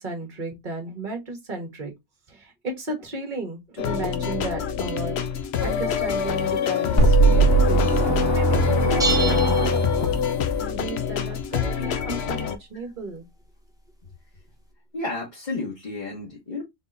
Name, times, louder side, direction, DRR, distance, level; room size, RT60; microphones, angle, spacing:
voice 1, 0.0-1.9 2.3-5.2 5.6-10.2 10.6-13.3, right 2 dB, 45° right, 1.4 m, -34 dB
sound 1, 3.8-12.6, left 7 dB, 65° left, 0.8 m, -25 dB
sound 2, 7.0-10.2, right 3 dB, 80° left, 1.8 m, -20 dB
sound 3, 9.0-10.6, right 5 dB, 5° right, 0.6 m, -29 dB
voice 2, 14.9-16.6, left 2 dB, 40° left, 1.4 m, -31 dB
4.1 x 3.5 x 2.5 m
omnidirectional pair, 1.3 m